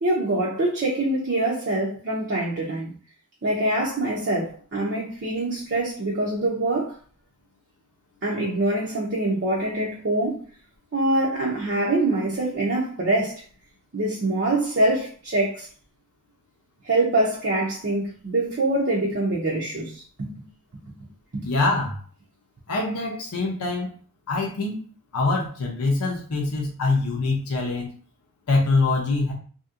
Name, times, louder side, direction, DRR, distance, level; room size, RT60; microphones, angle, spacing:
voice 1, 0.0-2.9 3.4-7.0 8.2-10.5 10.9-13.4 13.9-15.7 16.8-20.4 21.3-21.5, right 2 dB, 50° right, 0.6 m, -24 dB
voice 2, 21.4-22.0 22.7-23.9 24.3-24.8 25.1-27.9 28.5-29.3, left 3 dB, 85° left, 0.6 m, -24 dB
2.8 x 2.8 x 2.4 m
head